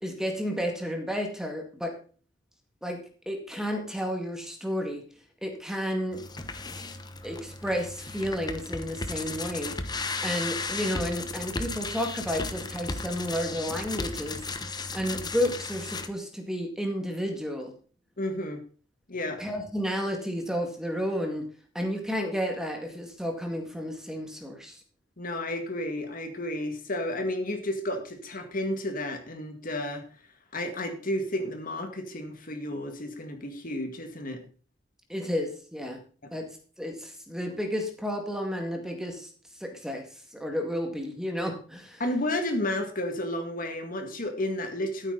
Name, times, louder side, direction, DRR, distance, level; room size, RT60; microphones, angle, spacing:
voice 1, 0.0-1.9 2.8-5.0 5.4-6.2 7.2-9.8 10.2-14.4 14.9-17.7 19.4-21.5 21.7-24.8 35.1-36.0 36.3-36.5 36.8-39.3 39.6-40.1 40.3-42.0, equal, 5° right, 3 dB, 2.1 m, -31 dB
sound 1, 6.1-16.1, left 3 dB, 20° left, 1.0 m, -35 dB
voice 2, 18.2-18.6 19.1-19.4 25.2-30.0 30.5-34.4 36.2-36.3 42.0-45.1, left 1 dB, 45° left, 5 dB, 2.1 m, -32 dB
13.5 x 8.9 x 4.1 m, 0.40 s
head